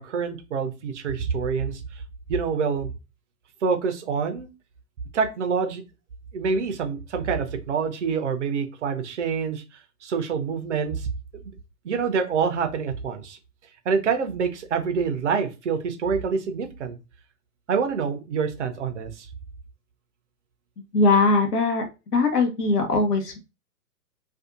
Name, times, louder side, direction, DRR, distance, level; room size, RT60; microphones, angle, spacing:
voice 1, 0.0-1.8 2.3-2.9 3.6-4.5 5.1-5.8 6.3-9.6 10.0-11.1 11.3-11.4 11.8-13.4 13.9-17.0 17.7-19.3, right 5 dB, 50° right, 7 dB, 0.6 m, -26 dB
voice 2, 20.9-21.8 22.1-23.4, left 3 dB, 75° left, 4 dB, 0.9 m, -20 dB
2.6 x 2.4 x 2.3 m, 0.28 s
figure-of-eight pair, 115°, 48 cm